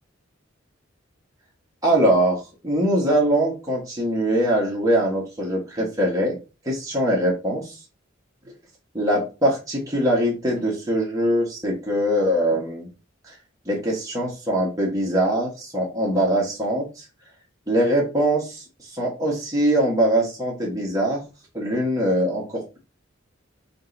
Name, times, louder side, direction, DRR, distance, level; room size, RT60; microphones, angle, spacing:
voice 1, 1.8-6.4 6.6-7.8 8.9-12.9 13.2-13.4 13.6-17.0 17.7-21.2 21.5-22.8, right 1 dB, 20° right, -4 dB, 1.3 m, -22 dB
5.2 x 2.6 x 3.9 m, 0.30 s
head